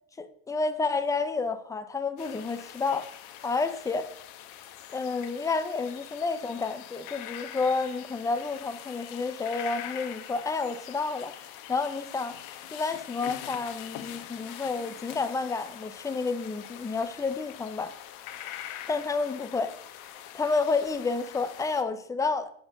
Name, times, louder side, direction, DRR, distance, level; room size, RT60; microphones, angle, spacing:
voice 1, 0.2-3.1 3.4-4.1 4.9-11.4 11.7-12.4 12.7-17.9 18.9-19.7 20.3-22.5, left 4 dB, 10° left, 0.3 m, -30 dB
sound 1, 2.2-21.8, left 11 dB, 90° left, 1.2 m, -43 dB
11.5 x 4.3 x 6.5 m
cardioid pair, 155°, 45 cm